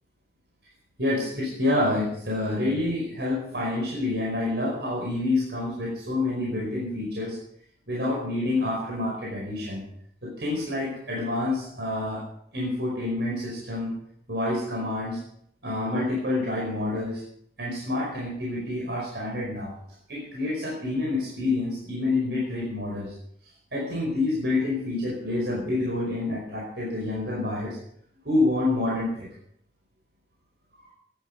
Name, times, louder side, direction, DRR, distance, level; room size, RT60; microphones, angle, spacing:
voice 1, 1.0-7.4 7.9-9.8 10.2-12.2 12.5-13.9 14.3-15.2 15.6-17.2 17.6-19.7 20.1-23.1 23.7-27.8 28.3-29.3 30.7-30.9, left 2 dB, 75° right, -3 dB, 5.1 m, -28 dB
17.0 x 12.0 x 5.3 m, 0.68 s
head